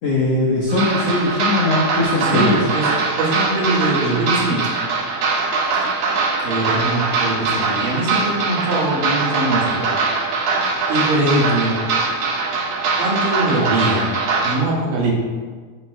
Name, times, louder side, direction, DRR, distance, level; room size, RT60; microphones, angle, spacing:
voice 1, 0.0-2.7, left 2 dB, 75° left, -4 dB, 1.4 m, -20 dB
sound 1, 0.7-14.5, right 4 dB, 85° right, 1.4 m, -22 dB
voice 2, 2.2-2.9 3.2-4.6 6.4-9.9 10.9-11.7 13.0-14.1 14.4-15.1, right 1 dB, 65° right, -5 dB, 3.3 m, -21 dB
13.0 x 7.6 x 2.2 m, 1.5 s
omnidirectional pair, 4.5 m